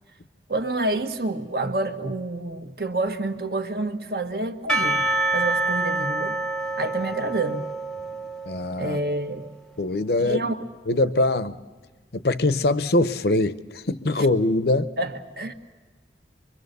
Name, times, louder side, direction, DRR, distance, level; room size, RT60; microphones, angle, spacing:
voice 1, 0.5-5.0 5.3-6.4 6.8-7.6 8.8-9.4 10.2-10.7 15.0-15.5, right 2 dB, 60° right, 1.6 m, -28 dB
Percussion / Church bell, 4.7-9.1, right 2 dB, 5° left, 0.9 m, -27 dB
voice 2, 8.5-9.0 9.8-10.4 10.9-11.6 12.1-14.9, left 2 dB, 65° left, 0.8 m, -22 dB
24.5 x 24.0 x 6.8 m
head